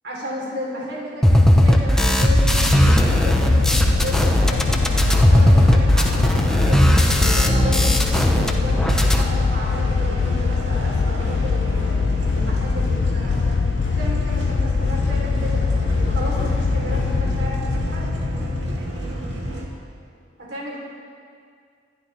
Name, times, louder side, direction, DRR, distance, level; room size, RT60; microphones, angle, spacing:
voice 1, 0.0-2.6 2.8-4.8 5.1-6.9 7.1-11.9 12.3-13.6 13.9-15.7 16.0-18.1 20.4-20.8, equal, 70° right, -4 dB, 3.8 m, -33 dB
sound 1, 1.2-8.5 8.8-9.2, equal, 5° left, 1.0 m, -17 dB
sound 2, 2.2-18.8, left 5 dB, 80° left, 0.4 m, -23 dB
sound 3, 2.5-19.6, right 1 dB, 90° right, 2.7 m, -30 dB
27.0 x 11.5 x 3.5 m, 2.3 s
head